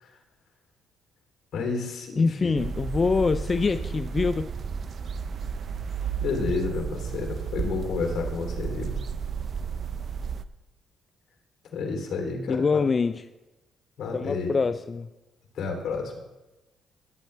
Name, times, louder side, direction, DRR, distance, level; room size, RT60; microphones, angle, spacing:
voice 1, 1.5-2.5 6.2-8.9 11.7-12.8 14.0-14.5 15.6-16.2, left 4 dB, 65° left, 2 dB, 3.2 m, -30 dB
voice 2, 2.2-4.5 12.5-13.3 14.1-15.1, left 4 dB, 35° left, 11 dB, 0.4 m, -25 dB
sound 1, 2.6-10.4, right 6 dB, 50° right, 0.6 m, -32 dB
19.0 x 9.2 x 3.3 m, 1.1 s
cardioid pair, 90°, 0 cm